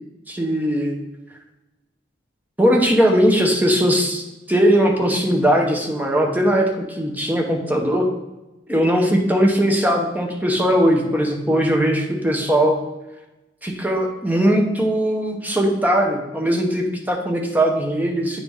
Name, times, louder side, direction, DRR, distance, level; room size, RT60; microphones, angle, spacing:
voice 1, 0.3-1.0 2.6-8.1 8.7-12.8 13.6-18.4, equal, 10° right, 1 dB, 0.8 m, -19 dB
9.6 x 3.9 x 3.5 m, 1.0 s
head